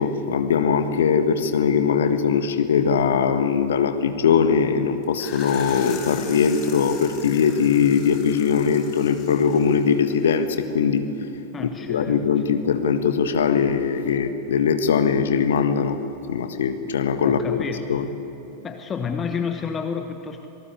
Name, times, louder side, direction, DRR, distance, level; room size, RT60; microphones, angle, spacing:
voice 1, 0.0-11.1 11.6-16.0 16.3-17.6 17.9-18.1, left 6 dB, 65° left, 9 dB, 1.6 m, -21 dB
sound 1, 5.0-10.6, left 6 dB, 40° left, 5.0 m, -41 dB
voice 2, 11.5-12.3 17.2-17.9 18.6-20.5, left 6 dB, 20° left, 6 dB, 1.3 m, -30 dB
27.0 x 19.0 x 8.5 m, 2.9 s
figure-of-eight pair, 90°, 0 cm